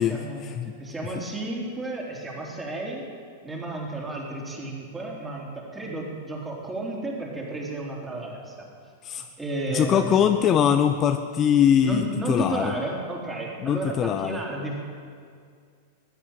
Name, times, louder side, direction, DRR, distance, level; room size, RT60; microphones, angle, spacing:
voice 1, 0.0-3.0 3.4-8.7 9.4-10.3 11.8-14.8, right 2 dB, 15° right, -2 dB, 3.6 m, -32 dB
voice 2, 9.7-12.0 12.3-12.6 13.6-14.4, left 9 dB, 30° left, 7 dB, 0.7 m, -21 dB
15.0 x 9.3 x 9.2 m, 2.2 s
hypercardioid pair, 100°, 0 cm